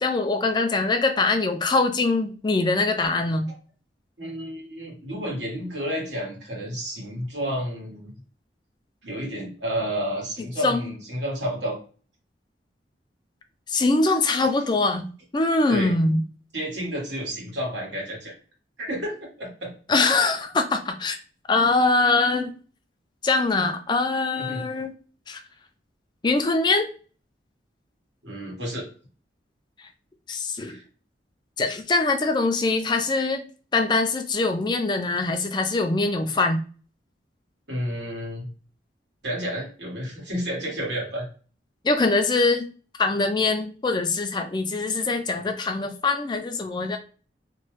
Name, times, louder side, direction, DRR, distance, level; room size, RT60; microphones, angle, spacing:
voice 1, 0.0-3.5 10.6-10.9 13.7-15.1 15.3-16.2 19.9-21.2 21.5-22.5 23.2-24.9 25.3-25.4 26.2-26.9 30.3-30.7 31.6-33.4 33.7-36.6 41.8-42.6 43.0-47.0, left 3 dB, 25° left, 6 dB, 0.4 m, -23 dB
voice 2, 4.2-8.1 9.0-11.8 14.4-14.5 15.7-15.9 16.5-18.3 18.8-19.7 24.3-24.6 28.2-28.9 30.6-30.8 37.7-38.5 39.2-41.3, equal, 80° right, -2 dB, 1.5 m, -31 dB
3.0 x 2.2 x 3.1 m, 0.39 s
head